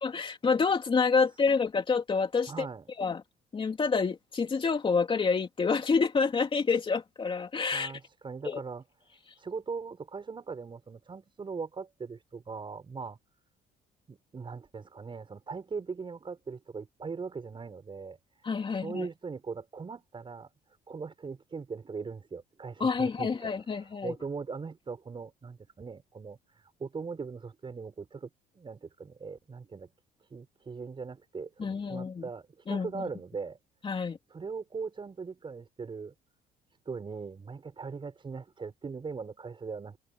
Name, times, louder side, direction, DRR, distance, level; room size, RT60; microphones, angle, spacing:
voice 1, 0.0-2.7 3.0-3.2 3.5-7.9 8.4-8.6 18.4-19.1 22.8-24.1 31.6-32.2 32.7-33.1 33.8-34.2, left 5 dB, 30° left, 2.9 m, -28 dB
voice 2, 2.5-2.9 7.7-8.8 9.4-13.2 14.1-20.5 20.9-29.9 30.3-33.6 34.3-36.1 36.9-40.0, right 5 dB, 30° right, 6.9 m, -40 dB
cardioid pair, 110°, 17 cm